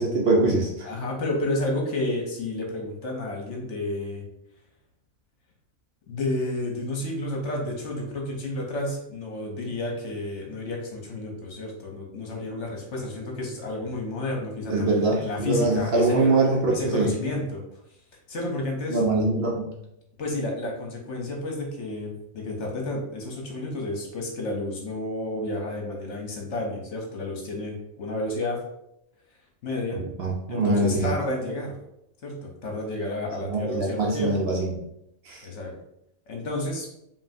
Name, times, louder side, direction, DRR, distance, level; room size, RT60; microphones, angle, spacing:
voice 1, 0.0-0.7 14.7-17.1 18.9-19.7 30.2-31.1 33.4-34.7 35.3-35.5, right 2 dB, 55° right, -2 dB, 0.8 m, -23 dB
voice 2, 0.8-4.3 6.1-16.3 16.7-17.6 18.3-19.0 20.2-28.6 29.6-30.0 30.5-31.8 32.2-34.4 35.4-35.7 36.3-36.9, left 2 dB, 60° left, 0 dB, 1.1 m, -31 dB
5.2 x 2.6 x 2.6 m, 0.81 s
omnidirectional pair, 1.4 m